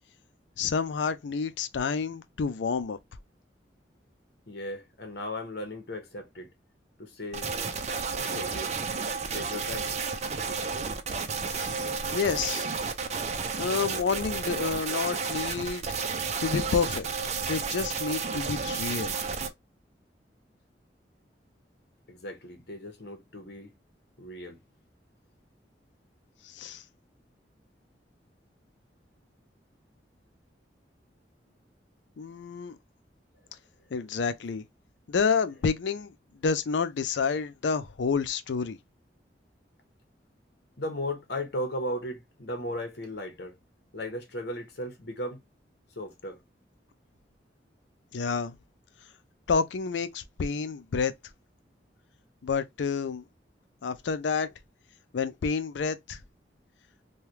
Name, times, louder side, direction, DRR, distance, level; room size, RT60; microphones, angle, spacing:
voice 1, 0.6-3.0 11.5-11.8 12.1-12.7 13.6-16.0 16.4-17.1 17.5-19.1 26.4-26.8 32.2-32.8 33.9-34.6 35.1-36.1 36.4-38.8 48.1-48.6 49.5-51.1 52.4-53.2 53.8-54.5 55.1-56.2, left 5 dB, 90° left, 0.4 m, -29 dB
voice 2, 4.5-6.5 7.0-7.5 8.2-8.7 9.3-9.9 22.1-23.7 24.2-24.6 40.8-43.6 43.9-45.4 45.9-46.4, left 1 dB, 65° left, 1.0 m, -36 dB
sound 1, 7.3-19.5, right 5 dB, 40° right, 0.5 m, -32 dB
3.2 x 2.3 x 2.8 m
head